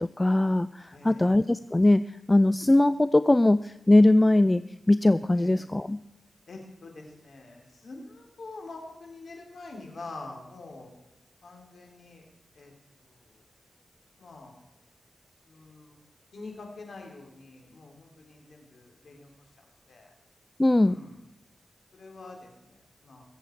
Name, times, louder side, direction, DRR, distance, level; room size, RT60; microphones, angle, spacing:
voice 1, 0.0-6.0 20.6-21.0, left 1 dB, 20° left, 14 dB, 0.4 m, -21 dB
voice 2, 0.9-1.3 5.3-5.5 6.5-11.0 11.4-12.3 12.6-12.7 14.2-14.6 15.5-16.0 16.3-19.3 19.9-20.1 20.8-21.1 21.9-22.8 23.0-23.2, left 3 dB, 75° left, 2 dB, 3.5 m, -45 dB
23.0 x 7.9 x 4.6 m, 0.90 s
cardioid pair, 60°, 0 cm